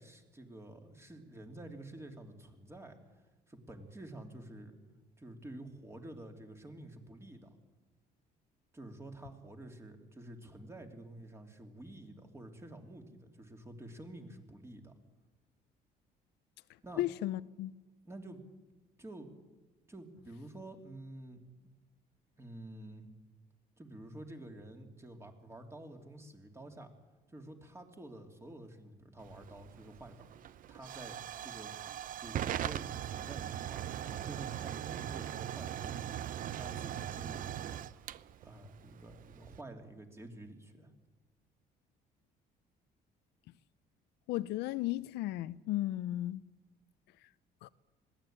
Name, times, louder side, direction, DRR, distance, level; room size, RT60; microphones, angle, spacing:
voice 1, 0.0-3.0 3.5-4.8 5.2-7.6 8.7-14.9 16.8-17.0 18.0-18.4 19.0-19.3 19.9-21.4 22.4-23.1 23.8-26.9 27.3-30.3 30.7-31.8 32.1-36.2 36.5-38.1 38.4-40.9, right 1 dB, 15° right, 3.0 m, -49 dB
voice 2, 17.0-17.7 44.3-46.4 47.6-47.7, left 15 dB, 85° left, 0.6 m, -35 dB
Hiss / Fire / Tick, 29.2-39.6, right 11 dB, 55° right, 0.6 m, -40 dB
21.0 x 16.0 x 8.9 m
cardioid pair, 110°, 17 cm